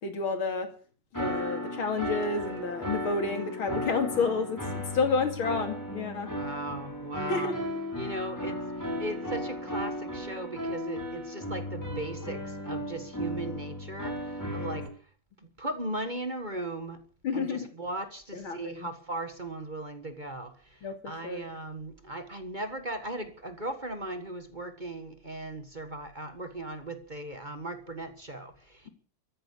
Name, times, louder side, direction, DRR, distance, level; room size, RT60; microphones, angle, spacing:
voice 1, 0.0-0.7 1.2-6.3 7.3-7.7 13.4-13.5 14.5-14.8 17.2-17.7 18.3-18.9 20.8-21.5, left 4 dB, 90° left, 3.3 m, -30 dB
sound 1, 1.1-14.9, equal, 10° left, 4.5 m, -35 dB
voice 2, 6.3-7.5 7.9-14.9 15.6-17.0 17.3-20.8 21.0-28.9, right 1 dB, 25° right, 1.6 m, -38 dB
14.5 x 10.5 x 8.4 m
omnidirectional pair, 2.2 m